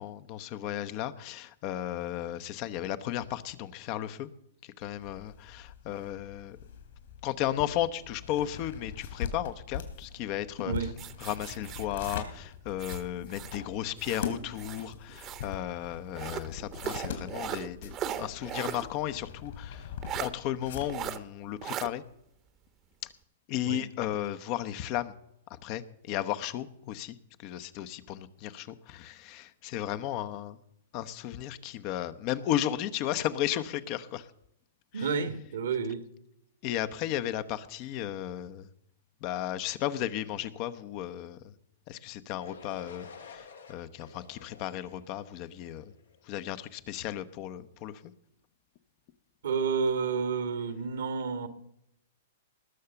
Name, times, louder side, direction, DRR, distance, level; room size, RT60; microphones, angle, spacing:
voice 1, 0.0-4.3 4.6-6.6 7.2-10.7 11.2-17.9 18.2-19.9 20.2-22.0 23.5-25.1 25.5-30.6 30.9-34.3 34.9-35.1 36.6-38.7 39.2-41.5 41.9-45.8 46.2-48.1, left 12 dB, 45° left, 0.9 m, -34 dB
sound 1, 4.8-21.1, left 7 dB, 70° left, 3.6 m, -42 dB
sound 2, 11.0-13.6 14.0-15.5 16.1-18.9 19.2-19.3 20.0-20.3 20.9-21.2 21.6-21.9, right 10 dB, 30° right, 1.1 m, -38 dB
voice 2, 34.9-36.1 49.4-51.5, right 5 dB, 75° right, 1.8 m, -30 dB
sound 3, 42.4-46.3, left 5 dB, 85° left, 2.3 m, -50 dB
19.5 x 6.6 x 7.0 m
hypercardioid pair, 115°, 0 cm